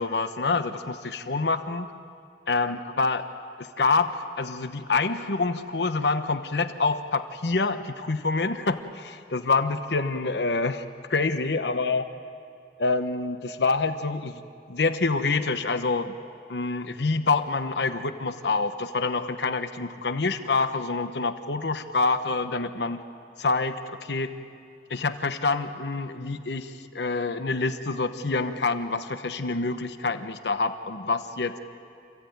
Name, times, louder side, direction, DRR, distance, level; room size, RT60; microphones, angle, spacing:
voice 1, 0.0-1.9 2.5-3.3 3.6-10.8 11.1-12.0 12.8-14.4 14.7-16.2 16.5-23.0 23.4-24.3 24.9-31.6, left 3 dB, 75° left, 9 dB, 0.9 m, -26 dB
27.5 x 16.0 x 9.4 m, 2.4 s
head